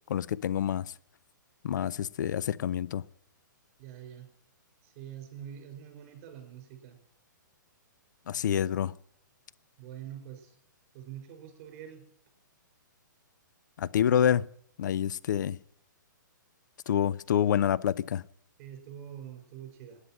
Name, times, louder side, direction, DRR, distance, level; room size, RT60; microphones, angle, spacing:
voice 1, 0.1-0.9 1.6-3.0 8.3-9.0 13.8-14.5 14.8-15.6 16.9-18.2, left 9 dB, 65° left, 0.5 m, -27 dB
voice 2, 3.8-4.3 4.8-7.0 9.8-10.6 10.9-12.0 18.6-20.0, right 10 dB, 40° right, 5.4 m, -45 dB
18.0 x 9.7 x 7.6 m
hypercardioid pair, 140°, 11 cm